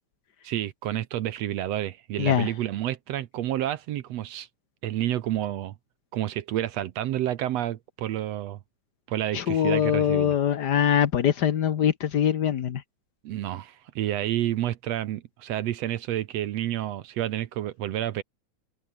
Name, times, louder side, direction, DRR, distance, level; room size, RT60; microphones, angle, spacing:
voice 1, 0.4-4.5 4.8-5.7 6.1-8.6 9.1-10.3 13.2-18.2, right 12 dB, 70° right, 1.9 m, -29 dB
voice 2, 2.2-2.5 9.3-12.8, left 9 dB, 65° left, 1.0 m, -23 dB
omnidirectional pair, 3.4 m